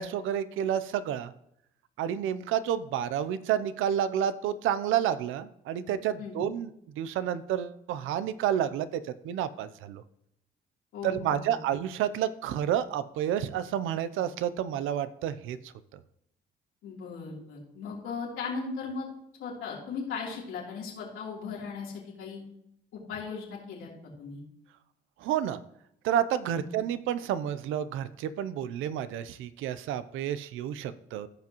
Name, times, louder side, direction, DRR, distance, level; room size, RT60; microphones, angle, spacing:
voice 1, 0.0-1.3 2.0-6.7 7.0-10.0 11.0-16.0 25.2-25.6 26.0-31.3, right 10 dB, 90° right, 14 dB, 0.6 m, -30 dB
voice 2, 10.9-11.7 16.8-19.1 19.4-22.4 22.9-23.9 24.2-24.4 26.5-26.7, left 5 dB, 90° left, -4 dB, 3.2 m, -37 dB
15.5 x 5.9 x 3.0 m, 0.77 s
cardioid pair, 90°, 20 cm